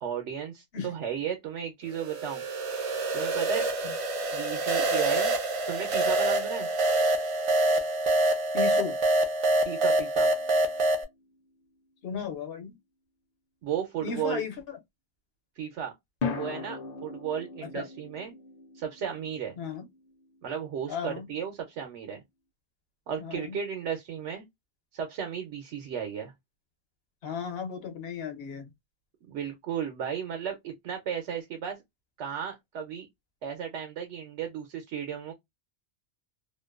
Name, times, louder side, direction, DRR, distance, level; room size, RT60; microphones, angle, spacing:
voice 1, 0.0-2.4 3.1-3.7 4.3-5.3 5.7-6.7 9.6-10.3 13.6-14.4 15.6-15.9 16.3-18.3 18.7-19.5 20.4-22.2 23.1-24.4 24.9-26.3 29.3-31.8 32.2-33.1 33.4-35.3, right 8 dB, 90° right, 0.9 m, -34 dB
sound 1, 2.0-11.0, right 2 dB, 60° right, 0.3 m, -26 dB
voice 2, 8.5-8.9 12.0-12.7 14.0-14.8 17.6-17.8 19.6-19.9 20.9-21.3 23.2-23.5 27.2-28.7, left 7 dB, 65° left, 1.0 m, -35 dB
sound 2, 10.2-11.3 16.2-20.5, left 5 dB, 50° left, 0.5 m, -39 dB
2.6 x 2.1 x 2.2 m
omnidirectional pair, 1.1 m